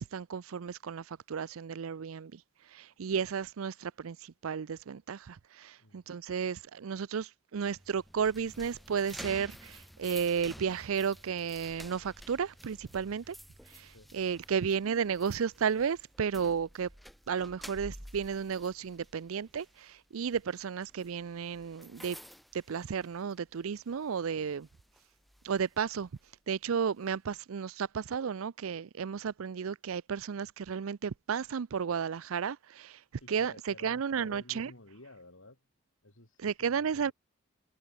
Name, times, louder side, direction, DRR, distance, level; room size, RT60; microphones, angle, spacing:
voice 1, 0.0-2.4 2.7-13.4 13.7-16.9 17.3-22.2 22.5-24.7 25.4-26.1 26.5-33.0 33.3-34.7 36.4-37.1, right 6 dB, 90° right, 0.5 m, -33 dB
sound 1, 7.6-23.5 23.9-24.1 24.6-26.3, equal, ahead, 5.5 m, -51 dB
voice 2, 33.2-35.6 36.0-37.1, left 2 dB, 80° left, 4.9 m, -53 dB
head